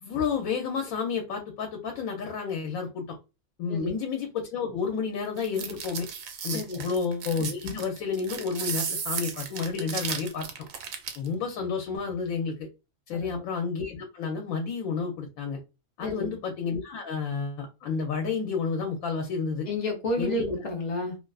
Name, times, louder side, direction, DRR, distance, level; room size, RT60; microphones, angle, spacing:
voice 1, 0.0-3.2 3.6-6.1 6.4-10.5 11.2-12.6 13.1-15.6 16.0-19.7 20.2-20.4, left 5 dB, 80° left, 3 dB, 1.0 m, -30 dB
voice 2, 3.7-4.0 6.5-6.9 13.1-13.4 16.0-16.3 19.7-21.2, left 1 dB, 45° left, 2 dB, 0.5 m, -31 dB
sound 1, 5.4-11.3, right 7 dB, 70° right, 0.9 m, -34 dB
2.5 x 2.4 x 2.3 m, 0.27 s
omnidirectional pair, 1.5 m